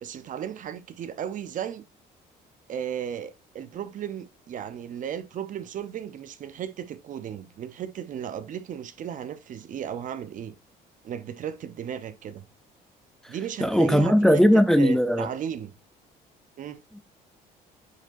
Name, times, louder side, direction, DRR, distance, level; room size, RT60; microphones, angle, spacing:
voice 1, 0.0-1.8 2.7-10.5 11.0-12.5 13.3-15.7 16.6-16.8, right 9 dB, 50° right, 0.7 m, -35 dB
voice 2, 13.6-15.3 16.9-17.0, equal, ahead, 0.6 m, -19 dB
9.5 x 4.9 x 2.7 m
cardioid pair, 110°, 17 cm